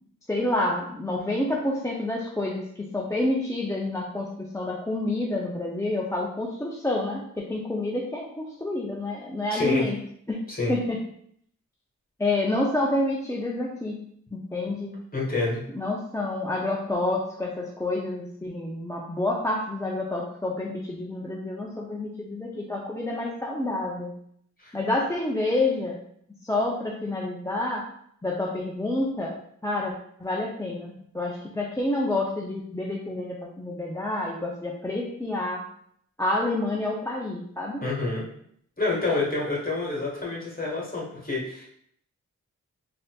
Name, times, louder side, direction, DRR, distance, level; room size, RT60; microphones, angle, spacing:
voice 1, 0.3-10.0 10.3-10.4 10.7-11.0 12.2-14.0 14.3-14.9 15.7-24.1 24.7-26.0 26.4-27.9 28.2-29.4 29.6-29.9 30.2-35.7 36.2-37.9, left 2 dB, 10° left, -2 dB, 0.5 m, -28 dB
voice 2, 9.5-9.8 10.5-10.7 15.1-15.6 24.6-24.8 37.8-38.2 38.8-41.7, left 3 dB, 30° left, -4 dB, 1.4 m, -28 dB
4.0 x 2.6 x 2.3 m, 0.67 s
cardioid pair, 55°, 29 cm